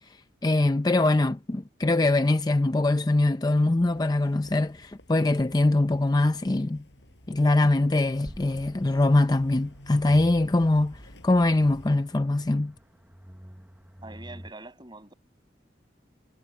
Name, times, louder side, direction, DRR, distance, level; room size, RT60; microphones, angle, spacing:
voice 1, 0.4-6.8 7.3-12.7, left 2 dB, 20° left, 0.5 m, -23 dB
sound 1, 3.8-12.0, left 1 dB, 75° left, 5.6 m, -53 dB
sound 2, 7.7-14.5, equal, 10° right, 0.8 m, -48 dB
voice 2, 14.0-15.1, right 2 dB, 25° right, 7.5 m, -44 dB
head